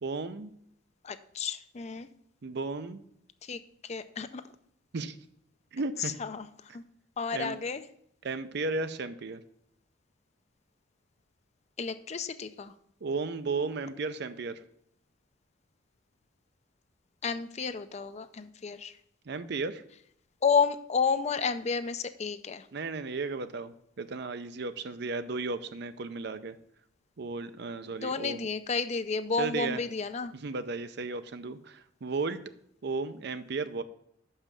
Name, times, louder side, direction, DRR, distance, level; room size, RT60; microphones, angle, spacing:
voice 1, 0.0-0.5 2.4-3.0 4.9-5.2 5.7-6.1 7.3-7.6 8.2-9.4 13.0-14.6 19.3-19.8 22.7-26.6 27.2-28.5 29.4-29.8 30.4-32.4 32.8-33.8, right 3 dB, 60° right, 12 dB, 0.5 m, -34 dB
voice 2, 1.0-2.1 3.4-4.4 6.0-6.8 7.2-7.8 11.8-12.7 17.2-18.9 20.4-22.7 28.0-30.3, left 5 dB, 35° left, 11 dB, 0.5 m, -31 dB
6.0 x 5.6 x 6.7 m, 0.70 s
head